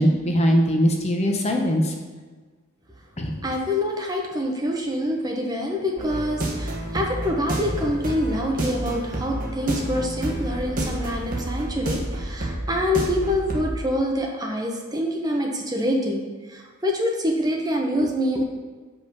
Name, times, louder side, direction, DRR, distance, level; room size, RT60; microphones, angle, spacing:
voice 1, 0.0-1.9 3.2-3.3, equal, 30° left, 2 dB, 0.8 m, -20 dB
voice 2, 3.4-16.2 16.5-18.4, equal, 15° right, 0 dB, 0.9 m, -26 dB
sound 1, 6.0-13.8, right 1 dB, 40° right, 1.3 m, -29 dB
7.6 x 5.4 x 5.3 m, 1.4 s
head